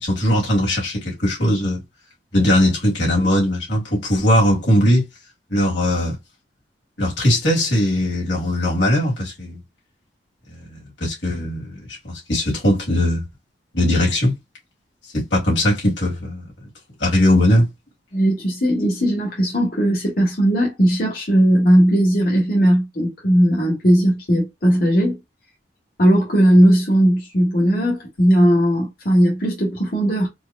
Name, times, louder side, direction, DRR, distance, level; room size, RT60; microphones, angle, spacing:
voice 1, 0.0-1.8 2.3-5.1 5.5-6.2 7.0-9.6 10.5-13.2 13.7-14.3 15.1-16.5 17.0-17.7, left 1 dB, 85° left, 2.5 m, -19 dB
voice 2, 18.1-25.2 26.0-30.3, equal, 55° left, 1.6 m, -17 dB
4.6 x 2.9 x 2.2 m
head